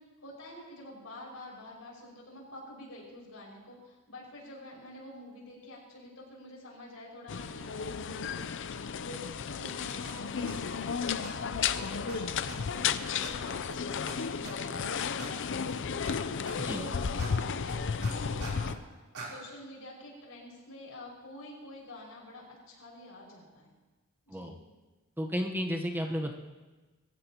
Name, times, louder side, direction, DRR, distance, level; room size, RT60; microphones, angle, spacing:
voice 1, 0.2-15.7 16.6-18.8 19.2-23.7 24.3-24.6, left 1 dB, 75° left, -3 dB, 5.9 m, -47 dB
sound 1, 7.3-18.8, left 6 dB, 60° left, 0.6 m, -33 dB
sound 2, 9.6-9.7 10.0-10.1 10.5-10.8 11.2-11.3 11.7-11.8 12.1-12.2 12.5-12.8 13.2-13.3 13.7-13.8 14.1-14.2 14.4-14.8 15.2-15.3 15.7-16.1 16.5-16.8 17.2-17.3 17.7-18.8 19.1-19.3, right 3 dB, 90° right, 3.8 m, -44 dB
voice 2, 25.2-26.3, equal, 10° right, 2 dB, 1.1 m, -33 dB
24.5 x 15.0 x 3.0 m, 1.2 s
head